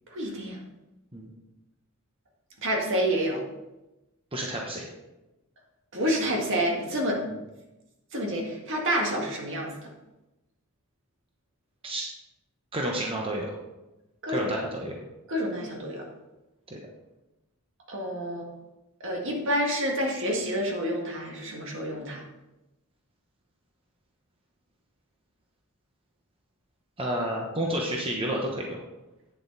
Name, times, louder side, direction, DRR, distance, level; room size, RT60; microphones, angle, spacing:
voice 1, 0.1-0.6 2.6-3.4 5.9-7.2 8.1-9.7 14.2-14.5 15.3-16.1 17.9-18.5 19.0-22.2, equal, 60° right, 0 dB, 1.9 m, -28 dB
voice 2, 4.3-4.9 11.8-12.1 12.7-13.5 14.3-15.0 16.7-16.8 27.0-28.8, right 1 dB, 25° right, -1 dB, 1.0 m, -30 dB
9.3 x 7.5 x 4.0 m, 1.0 s
head